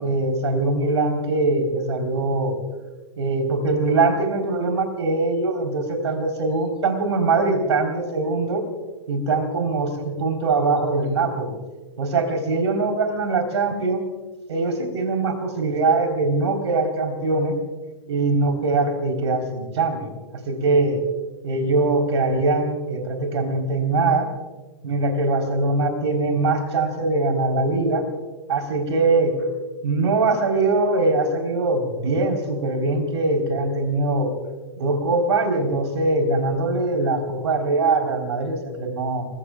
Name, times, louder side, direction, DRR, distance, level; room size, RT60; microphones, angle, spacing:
voice 1, 0.0-2.6 3.2-8.7 9.1-11.6 12.0-14.0 14.5-17.5 18.1-20.2 20.5-21.0 21.4-24.3 24.8-28.1 28.5-29.4 29.8-34.3 34.8-39.3, right 3 dB, 65° right, 4 dB, 3.7 m, -22 dB
29.5 x 21.0 x 2.3 m, 1.2 s
figure-of-eight pair, 105°, 16 cm